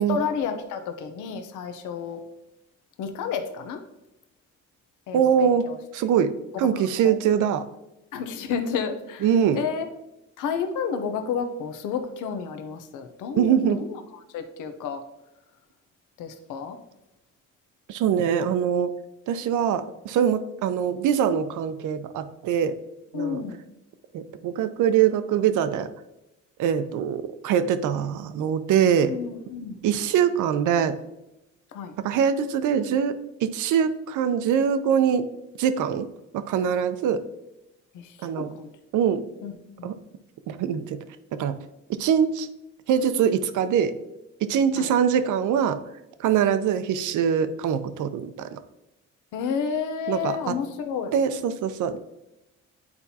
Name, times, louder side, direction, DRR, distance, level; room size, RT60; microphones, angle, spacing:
voice 1, 0.0-2.2 3.0-3.8 5.1-5.8 7.0-7.2 8.1-9.3 9.5-9.9 10.4-14.0 14.3-15.0 16.2-16.8 23.1-23.6 29.1-29.8 31.7-31.9 37.9-38.7 39.4-39.5 39.8-39.9 44.8-44.9 49.3-51.1, left 6 dB, 85° left, 7 dB, 0.7 m, -31 dB
voice 2, 5.1-5.7 5.9-6.3 6.6-7.7 9.2-9.6 13.4-13.8 17.9-18.9 19.3-22.8 23.1-23.4 24.1-25.9 26.6-29.1 29.8-31.0 32.0-35.2 35.6-36.1 36.3-37.2 38.2-38.5 38.9-39.2 39.8-40.0 40.5-41.0 41.3-41.6 41.9-42.5 42.9-43.9 44.4-45.8 46.2-48.6 50.1-50.5 51.1-52.0, right 8 dB, 80° right, 10 dB, 0.6 m, -23 dB
9.6 x 4.3 x 2.8 m, 0.91 s
cardioid pair, 90°, 30 cm